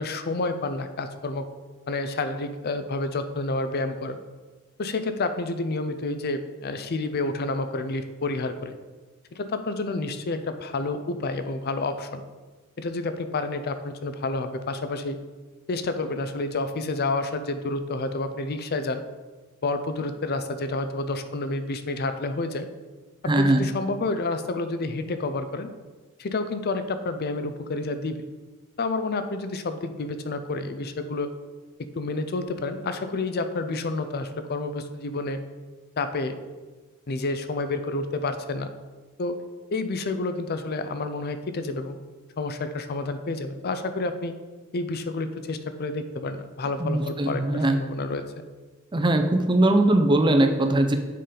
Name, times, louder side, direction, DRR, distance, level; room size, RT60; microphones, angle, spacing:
voice 1, 0.0-1.5 1.9-4.2 4.8-8.7 9.3-12.2 12.8-15.2 15.7-19.0 19.6-22.7 23.2-25.7 26.2-28.3 28.8-31.3 32.0-35.4 36.0-36.4 37.1-38.7 39.2-39.4 39.7-42.0 42.4-44.3 44.7-48.2, left 3 dB, 45° left, 9 dB, 0.5 m, -29 dB
voice 2, 23.3-23.7 46.8-47.8 48.9-51.0, right 1 dB, 20° right, 6 dB, 0.5 m, -20 dB
6.6 x 5.1 x 3.8 m, 1.3 s
head